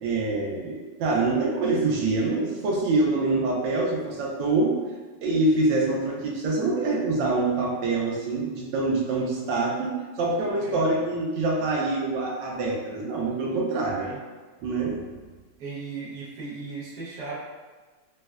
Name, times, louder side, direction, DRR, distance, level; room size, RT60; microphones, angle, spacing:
voice 1, 0.0-4.8 5.2-14.1 14.6-15.1, right 2 dB, 85° right, -2 dB, 1.3 m, -25 dB
voice 2, 10.6-11.1 14.0-14.2 15.6-17.4, right 4 dB, 65° right, -8 dB, 1.1 m, -37 dB
4.1 x 2.1 x 2.3 m, 1.3 s
omnidirectional pair, 2.0 m